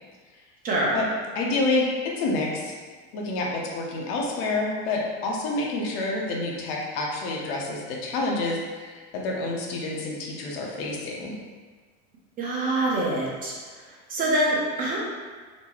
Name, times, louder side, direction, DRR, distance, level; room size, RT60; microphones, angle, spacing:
voice 1, 0.6-1.0 12.4-13.5 14.1-15.0, right 1 dB, 25° right, -4 dB, 0.8 m, -25 dB
voice 2, 1.3-2.7 3.1-11.3, left 2 dB, 70° left, -2 dB, 0.9 m, -28 dB
4.4 x 2.1 x 4.3 m, 1.5 s
cardioid pair, 160°, 32 cm